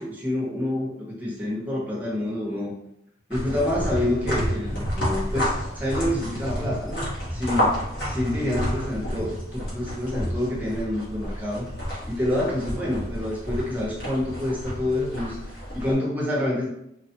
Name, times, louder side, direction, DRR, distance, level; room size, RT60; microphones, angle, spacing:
voice 1, 0.0-2.8 3.3-7.0 7.3-7.7 8.0-11.7 12.1-15.4 15.7-16.7, left 1 dB, 10° right, -4 dB, 0.7 m, -27 dB
sound 1, 3.3-15.9, equal, 75° left, 1.2 m, -30 dB
3.2 x 2.3 x 2.8 m, 0.79 s
head